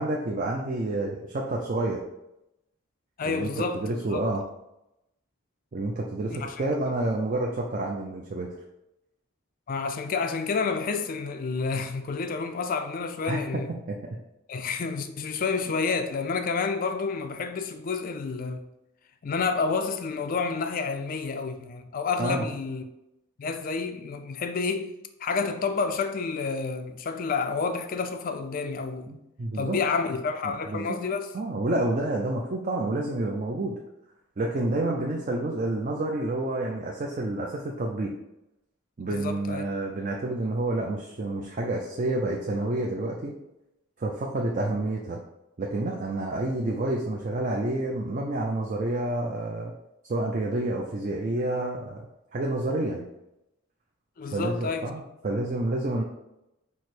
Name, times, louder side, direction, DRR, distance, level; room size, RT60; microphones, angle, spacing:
voice 1, 0.0-2.0 3.3-4.4 5.7-8.5 13.3-13.6 13.9-14.0 22.2-22.5 29.1-29.8 30.4-30.9 31.3-33.7 34.4-38.1 39.0-43.3 44.0-45.2 45.6-49.7 50.1-52.1 52.3-53.0 54.3-56.0, right 2 dB, 35° right, 0.4 m, -29 dB
voice 2, 3.2-3.8 4.1-4.2 6.3-6.6 9.7-13.7 14.5-18.7 19.2-22.8 23.4-24.9 25.2-29.1 29.5-31.3 39.1-39.6 54.2-54.9, left 4 dB, 40° left, 0.3 m, -29 dB
4.7 x 2.0 x 4.3 m
head